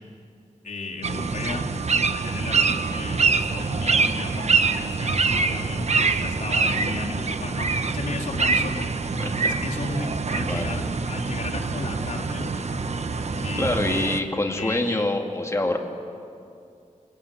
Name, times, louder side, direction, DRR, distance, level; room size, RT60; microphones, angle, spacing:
voice 1, 0.6-1.7 1.9-7.7 7.9-8.9 9.4-12.8 13.3-15.0, left 3 dB, 90° left, -2 dB, 3.2 m, -34 dB
sound 1, 1.0-14.2, right 4 dB, 60° right, 1.1 m, -25 dB
voice 2, 9.2-9.6 10.4-10.8 13.6-15.8, left 2 dB, 20° left, 2 dB, 2.3 m, -26 dB
26.0 x 21.0 x 9.2 m, 2.4 s
wide cardioid pair, 95°, 13 cm